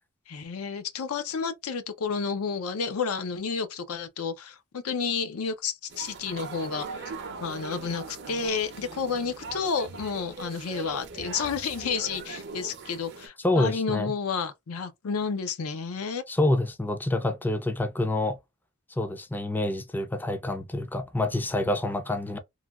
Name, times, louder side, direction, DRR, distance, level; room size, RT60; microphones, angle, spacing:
voice 1, 0.3-7.1 7.4-16.2, left 5 dB, 80° left, 0.5 m, -31 dB
sound 1, 5.9-13.3, right 4 dB, 55° right, 0.6 m, -40 dB
voice 2, 13.4-14.1 16.3-18.4 19.0-22.4, left 2 dB, 10° left, 0.4 m, -27 dB
3.1 x 2.2 x 2.3 m
head